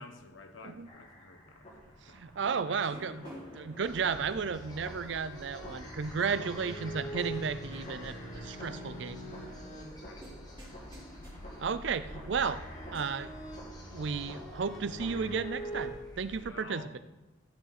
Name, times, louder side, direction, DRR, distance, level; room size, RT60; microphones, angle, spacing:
voice 1, 0.0-2.2 2.6-2.9 10.0-10.3 16.4-17.0, left 3 dB, 75° left, 6 dB, 1.2 m, -51 dB
sound 1, 0.8-15.9, equal, 35° left, 2.3 m, -45 dB
voice 2, 2.2-3.3 3.5-8.2 8.4-9.2 11.6-12.6 12.9-13.3 13.9-17.0, right 5 dB, 60° right, 13 dB, 0.5 m, -33 dB
sound 2, 2.8-13.6, equal, 25° right, 3.4 m, -55 dB
sound 3, 3.8-16.4, equal, 20° left, 1.3 m, -50 dB
14.0 x 6.3 x 4.2 m, 1.1 s
head